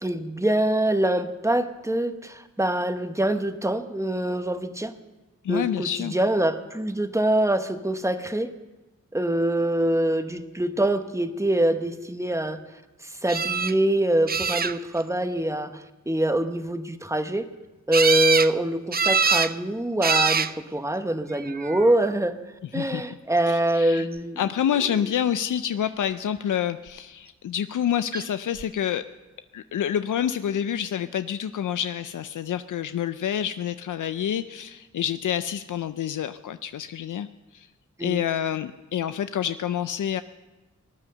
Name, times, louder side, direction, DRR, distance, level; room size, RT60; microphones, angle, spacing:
voice 1, 0.0-4.9 5.5-8.5 9.1-12.6 13.0-17.5 17.9-22.4 22.7-24.4 24.8-24.9 38.0-38.2, right 1 dB, 10° right, 8 dB, 1.0 m, -24 dB
voice 2, 5.4-6.1 22.7-23.0 23.5-24.1 24.4-29.0 29.5-37.3 37.5-37.7 38.0-40.2, left 9 dB, 85° left, 11 dB, 0.5 m, -28 dB
sound 1, 13.3-13.7 14.3-15.0 17.9-18.5 18.9-19.5 20.0-20.5 21.4-21.9 28.1-28.2 28.6-28.7, right 6 dB, 30° right, 0.5 m, -23 dB
18.5 x 9.9 x 6.8 m, 1.1 s
wide cardioid pair, 90°, 30 cm